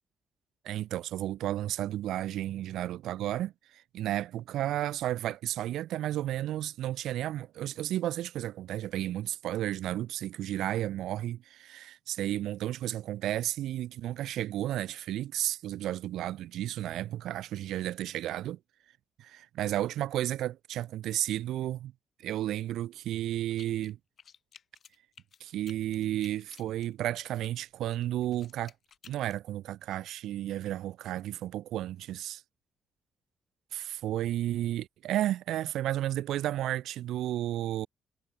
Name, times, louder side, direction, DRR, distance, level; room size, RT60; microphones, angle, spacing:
voice 1, 0.6-18.6 19.2-21.9 22.2-24.0 25.4-28.7 29.0-32.4 33.7-37.9, right 13 dB, 80° right, 0.4 m, -33 dB
sound 1, 23.5-23.9 24.2-27.5 27.9-29.4, left 7 dB, 55° left, 3.0 m, -55 dB
cardioid pair, 90°, 0 cm